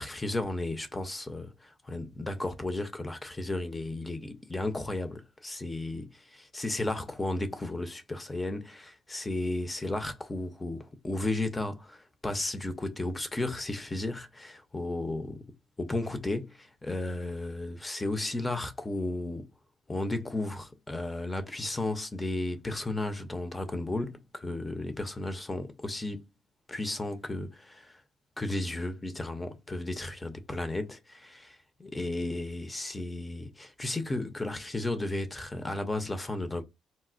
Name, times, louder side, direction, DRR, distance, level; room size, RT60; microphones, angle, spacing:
voice 1, 0.0-15.4 15.8-19.5 19.9-26.3 26.7-28.0 28.4-36.6, left 2 dB, 20° left, 0.6 m, -34 dB
4.0 x 2.1 x 2.5 m
cardioid pair, 90°, 0 cm